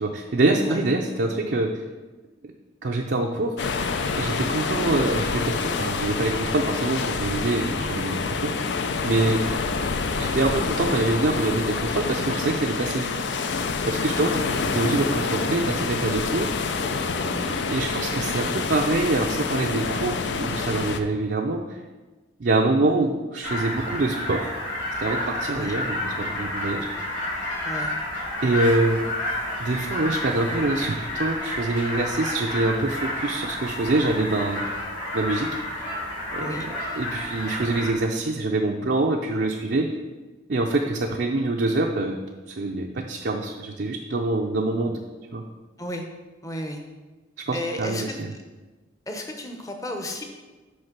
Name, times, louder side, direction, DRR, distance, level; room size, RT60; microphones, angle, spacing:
voice 1, 0.0-1.7 2.4-2.5 2.8-3.5 4.2-8.7 9.0-9.4 10.2-13.1 13.9-16.7 17.3-21.8 22.4-24.5 25.0-26.9 28.4-29.0 29.6-34.6 35.1-35.5 36.3-36.7 36.9-39.9 40.5-42.2 42.5-45.0 45.3-45.4 47.5-48.3, right 2 dB, 60° right, 1 dB, 0.5 m, -25 dB
sound 1, 3.6-21.0, left 4 dB, 65° left, 0.5 m, -27 dB
voice 2, 14.1-14.6 17.2-17.5 25.5-25.8 27.6-27.9 36.4-36.7 45.8-46.0 46.4-46.8 47.5-48.1 49.1-50.2, left 1 dB, 15° left, 3 dB, 0.8 m, -33 dB
sound 2, 23.4-37.9, left 1 dB, 80° left, 2.7 m, -30 dB
6.3 x 5.0 x 5.9 m, 1.2 s
head